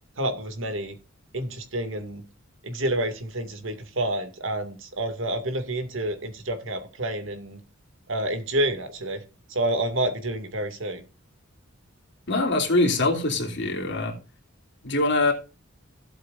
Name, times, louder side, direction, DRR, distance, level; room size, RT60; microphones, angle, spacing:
voice 1, 0.2-1.0 1.3-2.2 2.6-7.6 8.1-9.2 9.5-11.0, right 1 dB, 65° right, 2.4 m, -29 dB
voice 2, 12.3-14.2 14.8-15.3, left 2 dB, 60° left, 3.1 m, -23 dB
16.0 x 8.0 x 2.6 m
head